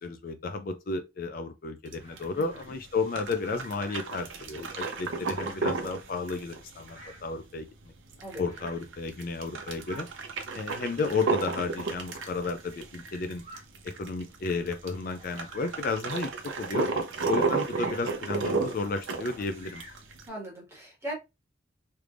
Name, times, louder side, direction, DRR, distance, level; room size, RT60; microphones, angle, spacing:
voice 1, 0.0-7.7 8.4-10.1 10.5-13.4 13.8-16.3 16.6-16.9 17.3-19.8, left 4 dB, 45° left, 0.4 m, -32 dB
sound 1, 1.9-20.3, right 4 dB, 85° right, 0.7 m, -33 dB
Bird vocalization bird call bird song, 2.0-2.7 3.7-4.2 5.2-5.7 6.8-7.3 8.4-8.9 9.4-10.1 10.9-11.0 12.1-12.4 13.3-13.7 14.3-14.4 15.1-15.9 17.6-18.2 19.2-20.1, right 1 dB, 35° right, 1.5 m, -50 dB
voice 2, 2.4-2.8 8.2-8.4 20.3-21.1, right 1 dB, 15° right, 1.4 m, -39 dB
3.4 x 3.2 x 2.5 m
head